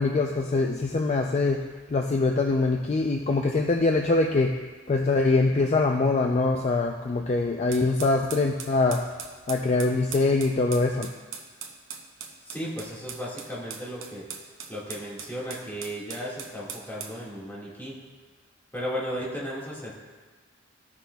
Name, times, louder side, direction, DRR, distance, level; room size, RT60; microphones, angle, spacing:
voice 1, 0.0-1.6 1.9-4.5 4.9-9.0 9.5-11.1, left 3 dB, 35° left, 2 dB, 0.4 m, -23 dB
sound 1, 7.7-17.2, right 6 dB, 80° right, 0.8 m, -40 dB
voice 2, 12.5-14.3 14.7-18.0 18.7-19.9, equal, 10° left, -7 dB, 1.8 m, -35 dB
14.5 x 5.9 x 2.3 m, 1.4 s
head